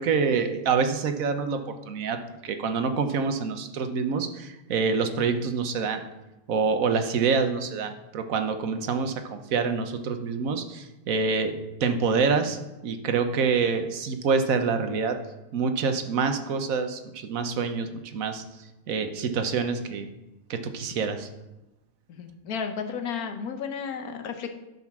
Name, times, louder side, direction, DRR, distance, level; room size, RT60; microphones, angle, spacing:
voice 1, 0.0-6.0 6.5-15.2 15.5-18.4 18.9-20.1 20.5-21.3, right 5 dB, 65° right, 7 dB, 1.3 m, -26 dB
voice 2, 22.1-24.5, left 6 dB, 75° left, 6 dB, 1.5 m, -33 dB
12.0 x 5.5 x 6.1 m, 0.98 s
omnidirectional pair, 1.6 m